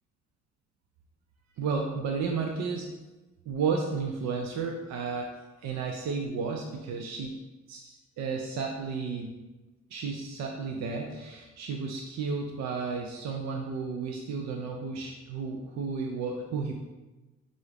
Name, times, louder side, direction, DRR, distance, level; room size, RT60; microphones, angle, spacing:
voice 1, 1.6-2.9 3.5-5.4 5.6-7.4 7.7-9.3 9.9-16.7, right 5 dB, 65° right, 2 dB, 0.5 m, -32 dB
5.3 x 2.4 x 3.3 m, 1.1 s
cardioid pair, 90°, 30 cm